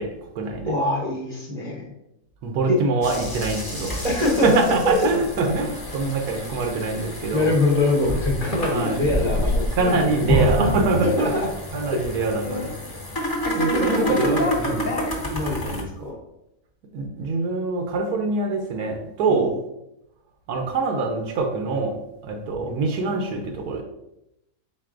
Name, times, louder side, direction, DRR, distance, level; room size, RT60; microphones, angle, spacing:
voice 1, 0.0-0.7 2.4-4.0 4.4-7.5 8.7-9.0 9.8-11.3 11.7-12.7 13.6-14.8 16.9-19.6 20.5-23.8, right 3 dB, 80° right, 2 dB, 1.1 m, -24 dB
voice 2, 0.7-1.9 2.7-2.8 4.0-5.0 7.3-10.7 11.0-11.5 11.9-12.0 13.7-14.5 15.3-16.1 19.3-19.6 22.6-22.7, left 2 dB, 40° right, -4 dB, 0.6 m, -24 dB
sound 1, 3.0-15.8, equal, 30° left, 0.4 m, -29 dB
sound 2, 7.7-10.0 10.3-10.8 11.2-11.5 11.8-13.2 13.4-15.7, left 1 dB, 45° left, 0.8 m, -29 dB
4.4 x 4.0 x 2.4 m, 0.85 s
omnidirectional pair, 1.6 m